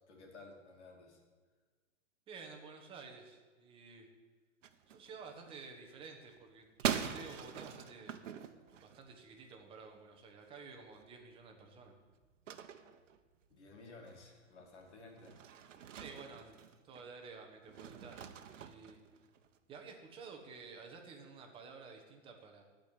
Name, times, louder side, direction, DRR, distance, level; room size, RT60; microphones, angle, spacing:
voice 1, 0.1-1.2 13.5-15.4, left 3 dB, 65° left, 1 dB, 3.1 m, -55 dB
voice 2, 2.3-4.1 4.9-8.2 8.8-12.0 15.9-16.6 16.8-19.0 19.7-22.6, right 4 dB, 15° right, 3 dB, 1.2 m, -52 dB
sound 1, 4.6-5.7 5.9-9.5 10.0-10.2 10.5-10.6 10.8-17.1 17.6-19.6, right 8 dB, 75° right, 1.1 m, -43 dB
14.5 x 5.2 x 9.6 m, 1.4 s
hypercardioid pair, 160°, 37 cm